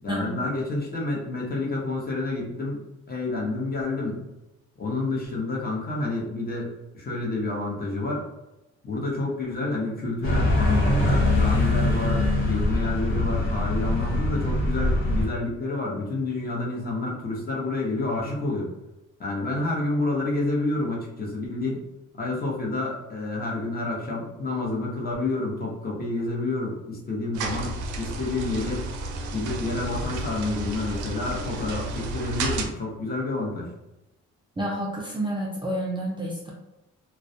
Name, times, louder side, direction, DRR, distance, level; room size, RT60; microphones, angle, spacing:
voice 1, 0.0-2.8 3.1-4.2 4.8-8.2 8.8-18.7 19.2-21.8 22.2-28.9 29.3-33.7, left 2 dB, 30° left, -3 dB, 0.8 m, -29 dB
sound 1, 10.2-15.3, left 2 dB, 70° left, 0.9 m, -23 dB
sound 2, 27.3-32.7, right 2 dB, 80° right, 0.5 m, -32 dB
voice 2, 34.6-36.5, right 1 dB, 15° right, -3 dB, 0.4 m, -29 dB
2.2 x 2.1 x 2.6 m, 0.96 s
cardioid pair, 90°, 30 cm